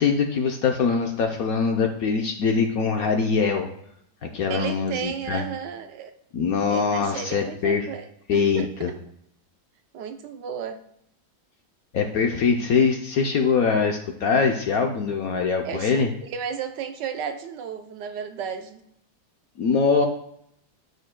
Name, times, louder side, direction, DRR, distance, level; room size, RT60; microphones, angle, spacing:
voice 1, 0.0-3.7 4.2-5.4 6.3-7.8 8.3-8.9 11.9-16.1 19.6-20.1, left 5 dB, 60° left, 4 dB, 1.0 m, -23 dB
voice 2, 4.5-6.1 6.7-9.0 9.9-10.8 15.6-18.8, right 7 dB, 70° right, 8 dB, 1.2 m, -33 dB
13.0 x 5.4 x 2.2 m, 0.74 s
omnidirectional pair, 2.1 m